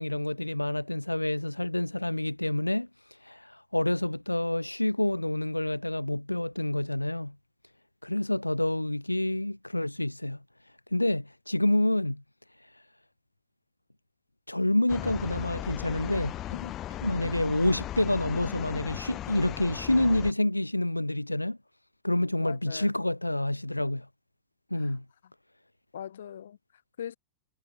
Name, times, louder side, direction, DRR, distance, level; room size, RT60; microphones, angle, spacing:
voice 1, 0.0-7.3 8.0-10.4 10.9-12.2 12.6-12.8 14.5-16.4 17.0-21.6 22.0-24.1 24.7-25.0, left 1 dB, 85° left, 0.5 m, -28 dB
sound 1, 14.9-20.3, left 13 dB, 30° left, 0.4 m, -37 dB
voice 2, 22.4-22.9 24.7-25.0 25.2-25.3 25.9-27.2, left 9 dB, 65° left, 0.8 m, -41 dB
figure-of-eight pair, 90°, 0 cm